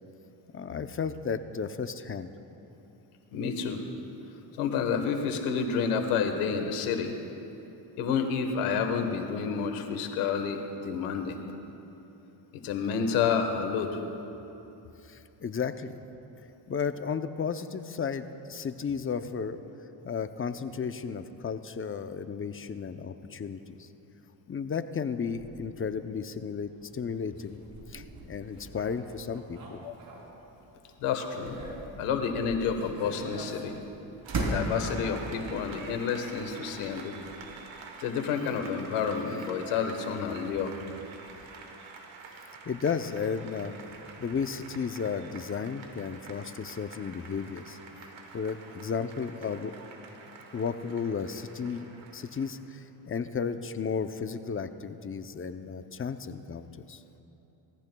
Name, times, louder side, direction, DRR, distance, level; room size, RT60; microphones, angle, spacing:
voice 1, 0.5-2.3 15.1-16.0 16.7-19.6 20.0-23.9 24.5-27.6 27.9-29.8 42.6-43.8 44.2-47.8 48.3-49.7 50.5-57.0, left 6 dB, 25° left, 10 dB, 0.6 m, -34 dB
voice 2, 3.3-3.8 4.6-7.1 7.4-7.5 8.0-11.4 12.5-14.0 29.8-30.0 31.0-31.6 32.0-33.8 34.4-37.2 38.0-40.8, left 6 dB, 90° left, 6 dB, 1.4 m, -29 dB
sound 1, 25.3-30.7 31.0-35.3 36.3-37.7, right 2 dB, 45° right, 3.5 m, -39 dB
Applause, 34.2-52.5, right 4 dB, 70° right, 1.9 m, -47 dB
21.5 x 14.5 x 2.3 m, 3.0 s
cardioid pair, 85°, 48 cm